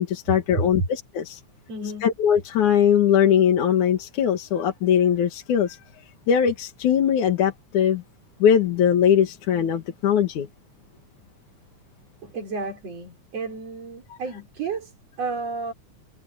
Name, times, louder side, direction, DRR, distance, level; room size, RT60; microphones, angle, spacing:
voice 1, 0.0-1.4 2.0-5.8 6.3-8.0 8.4-10.5, left 8 dB, 75° left, 3.1 m, -20 dB
voice 2, 1.7-2.1 12.2-15.7, right 3 dB, 55° right, 5.5 m, -32 dB
omnidirectional pair, 3.5 m